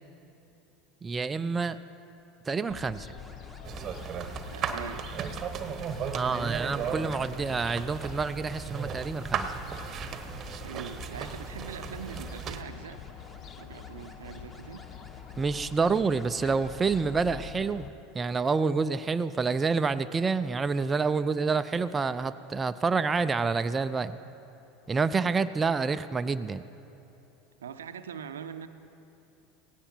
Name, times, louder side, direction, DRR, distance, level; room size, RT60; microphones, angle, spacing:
voice 1, 1.0-1.8 2.5-3.1 6.1-9.5 15.4-24.2 24.9-26.6, right 4 dB, 20° right, 10 dB, 0.5 m, -28 dB
Fowl, 2.7-17.9, left 9 dB, 40° left, 0.7 m, -45 dB
sound 1, 3.2-17.4, left 1 dB, 20° left, 2.1 m, -54 dB
sound 2, 3.6-12.6, right 7 dB, 35° right, 1.0 m, -36 dB
voice 2, 4.5-5.1 10.6-13.0 13.6-14.9 25.2-25.4 27.6-28.7, right 7 dB, 75° right, 10 dB, 0.6 m, -42 dB
17.0 x 16.5 x 4.4 m, 3.0 s
figure-of-eight pair, 75°, 0 cm